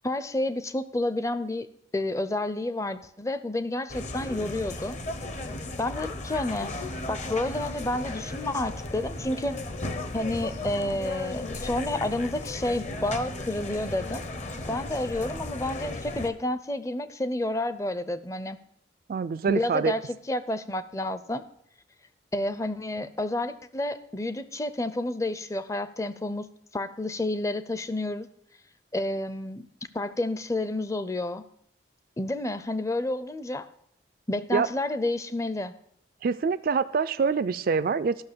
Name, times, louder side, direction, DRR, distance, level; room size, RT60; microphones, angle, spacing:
voice 1, 0.0-1.7 1.9-5.0 5.8-6.7 7.1-9.6 10.1-14.2 14.7-18.6 19.5-21.4 22.3-26.5 26.7-28.3 28.9-29.7 29.9-31.4 32.2-33.7 34.3-35.7, left 1 dB, 15° left, 13 dB, 0.5 m, -30 dB
sound 1, 3.9-16.3, left 2 dB, 40° left, 0.8 m, -35 dB
voice 2, 19.1-19.9 34.5-34.7 36.2-38.2, right 5 dB, 55° right, 13 dB, 0.3 m, -25 dB
13.0 x 6.1 x 6.8 m, 0.69 s
head